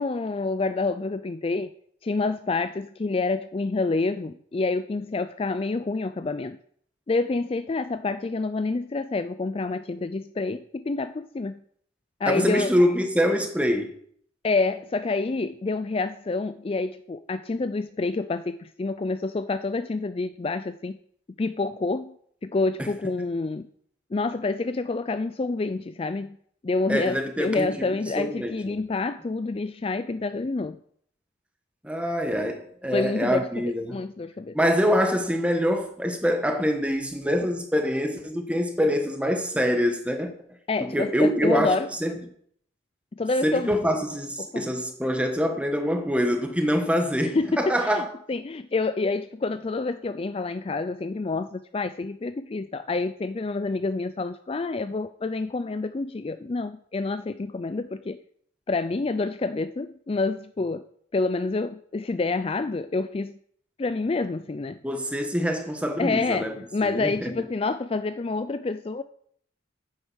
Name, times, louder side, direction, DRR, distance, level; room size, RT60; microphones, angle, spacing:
voice 1, 0.0-1.7 2.0-6.6 7.1-11.5 12.2-12.7 14.4-21.0 21.4-22.2 22.4-23.7 24.1-26.4 26.6-30.8 32.9-33.4 33.9-34.6 40.7-41.9 43.1-43.8 44.4-44.6 47.3-58.2 58.7-60.8 61.1-63.3 63.8-64.8 66.0-69.0, left 3 dB, 30° left, 0.4 m, -28 dB
voice 2, 12.2-13.9 26.9-27.7 28.2-28.8 31.8-34.0 34.5-40.3 40.8-42.1 43.4-48.1 64.8-66.5 66.8-67.3, equal, 5° right, 1.4 m, -25 dB
9.7 x 8.8 x 6.3 m
head